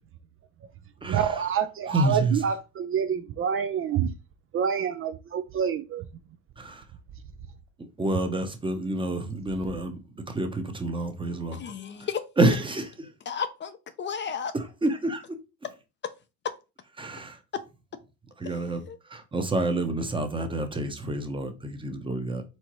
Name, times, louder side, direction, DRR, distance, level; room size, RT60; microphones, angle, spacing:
voice 1, 1.0-4.1 4.5-6.1, right 8 dB, 40° right, 0.5 m, -27 dB
voice 2, 1.9-2.4 6.6-6.8 8.0-10.0 10.3-11.6 12.0-12.1 12.4-13.1 14.5-15.2 17.0-17.4 18.4-18.8 19.1-22.4, right 2 dB, 15° right, 0.9 m, -28 dB
voice 3, 11.5-12.2 13.3-14.5 18.9-19.0, left 7 dB, 35° left, 0.5 m, -33 dB
4.4 x 3.8 x 3.0 m
supercardioid pair, 100°, 32 cm